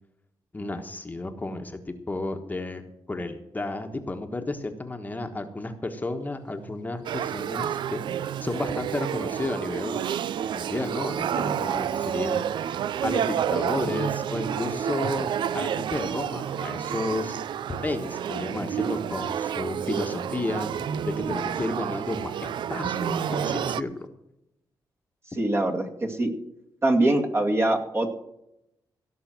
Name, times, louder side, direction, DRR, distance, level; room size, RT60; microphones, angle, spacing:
voice 1, 0.5-2.8 3.1-8.0 8.4-10.0 10.5-15.3 15.5-17.4 17.7-20.7 21.0-24.1, left 2 dB, 20° left, 5 dB, 1.3 m, -32 dB
Wild animals, 6.4-6.8 8.0-8.7 11.0-11.9 13.7-14.8 16.3-17.2 18.8-19.9 20.6-21.5 22.8-23.8, right 5 dB, 65° right, 1.3 m, -37 dB
Male speech man speaking / Child speech kid speaking / Conversation, 7.0-23.8, right 9 dB, 80° right, 0.5 m, -30 dB
voice 2, 25.4-26.3 26.8-28.1, right 1 dB, 35° right, 2 dB, 2.3 m, -23 dB
16.5 x 6.2 x 7.6 m, 0.84 s
cardioid pair, 100°, 8 cm